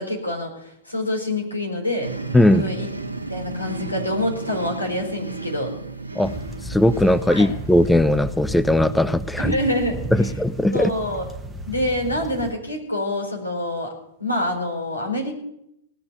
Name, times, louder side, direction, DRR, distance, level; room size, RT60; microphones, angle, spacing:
voice 1, 0.0-2.1 2.5-5.7 7.3-7.5 9.4-10.3 10.7-11.2 11.7-13.9 14.2-15.3, left 1 dB, 85° left, 1 dB, 3.9 m, -26 dB
sound 1, 2.0-8.4, right 3 dB, 85° right, 1.4 m, -33 dB
voice 2, 2.3-2.7 6.2-6.3 6.7-9.5 10.2-10.9, left 1 dB, 5° left, 15 dB, 0.4 m, -18 dB
sound 2, 6.2-12.5, right 2 dB, 10° right, 1.0 m, -33 dB
18.0 x 6.9 x 7.9 m, 0.80 s
figure-of-eight pair, 100°, 0 cm